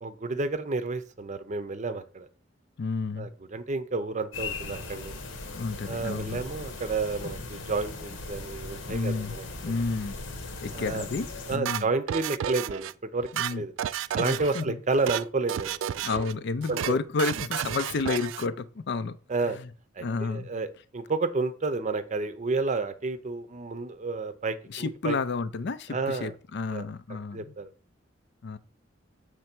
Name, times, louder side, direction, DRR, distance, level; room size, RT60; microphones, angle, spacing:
voice 1, 0.0-2.3 3.2-5.2 5.9-9.4 10.7-11.1 11.5-13.7 14.1-16.3 16.7-17.0 19.3-19.6 20.0-25.2 25.9-26.3 26.7-26.9 27.3-27.7, right 3 dB, 40° right, 0.6 m, -31 dB
voice 2, 2.8-3.3 5.4-6.4 8.9-10.2 10.6-11.9 13.3-13.6 14.2-14.8 16.0-19.2 19.4-19.7 20.0-20.5 24.7-27.6 28.4-28.6, left 4 dB, 60° left, 0.5 m, -31 dB
sound 1, 4.3-11.6, left 3 dB, 80° left, 1.1 m, -38 dB
sound 2, 11.6-12.9 13.2-14.6 14.9-15.2 15.5-16.3 16.6-16.9 17.2-18.5, right 10 dB, 75° right, 0.3 m, -32 dB
6.6 x 3.2 x 6.0 m
head